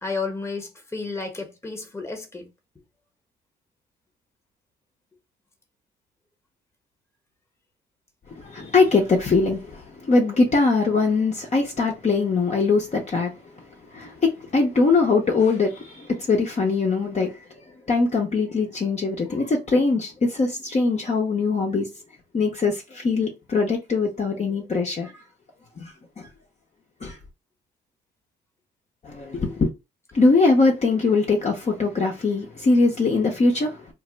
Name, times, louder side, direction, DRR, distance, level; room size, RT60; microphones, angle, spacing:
voice 1, 0.0-2.5, left 4 dB, 15° left, 1.1 m, -32 dB
voice 2, 8.4-13.3 13.9-17.3 17.9-21.9 22.3-25.1 25.8-26.3 27.0-27.2 29.0-29.7 30.1-33.9, left 3 dB, 35° left, 0.8 m, -22 dB
2.6 x 2.1 x 3.8 m
cardioid pair, 90°, 20 cm